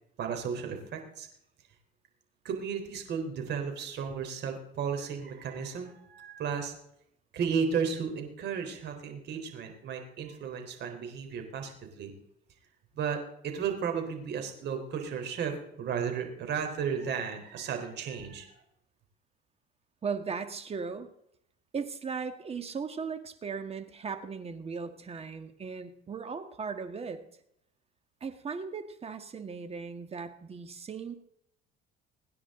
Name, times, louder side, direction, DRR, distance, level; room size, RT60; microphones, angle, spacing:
voice 1, 0.2-1.3 2.4-6.7 7.3-12.1 13.0-18.5, right 6 dB, 55° right, 5 dB, 4.0 m, -34 dB
voice 2, 20.0-21.1 21.7-27.2 28.2-31.1, right 5 dB, 30° right, 8 dB, 1.8 m, -37 dB
25.0 x 10.0 x 3.9 m, 0.76 s
cardioid pair, 105°, 20 cm